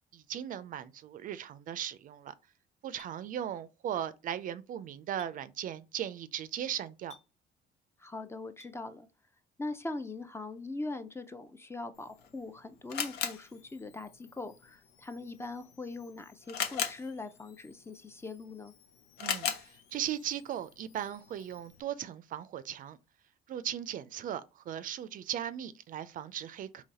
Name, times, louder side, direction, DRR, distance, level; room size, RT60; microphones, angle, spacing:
voice 1, 0.1-2.3 2.8-7.1 19.2-23.0 23.5-26.8, right 10 dB, 55° right, 0.4 m, -38 dB
Chink clink, 3.0-3.1 5.2-5.3 7.1-7.3 8.6-8.8, left 4 dB, 40° left, 0.9 m, -54 dB
voice 2, 8.0-9.1 9.6-18.7, left 2 dB, 15° left, 0.5 m, -41 dB
Camera, 12.0-21.8, left 8 dB, 75° left, 0.8 m, -41 dB
3.9 x 3.0 x 4.1 m
cardioid pair, 110°, 17 cm